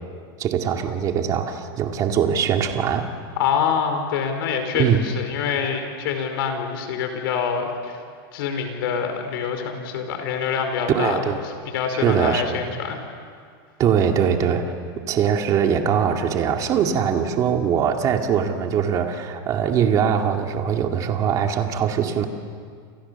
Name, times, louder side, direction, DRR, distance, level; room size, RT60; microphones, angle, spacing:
voice 1, 0.4-3.1 4.7-5.1 10.9-11.4 11.9-12.6 13.8-14.7 15.1-22.3, right 8 dB, 25° right, 4 dB, 2.2 m, -22 dB
voice 2, 3.4-8.0 8.3-11.2 11.6-13.0, left 7 dB, 60° left, 6 dB, 4.9 m, -25 dB
29.5 x 28.5 x 7.1 m, 2.1 s
supercardioid pair, 165°, 13 cm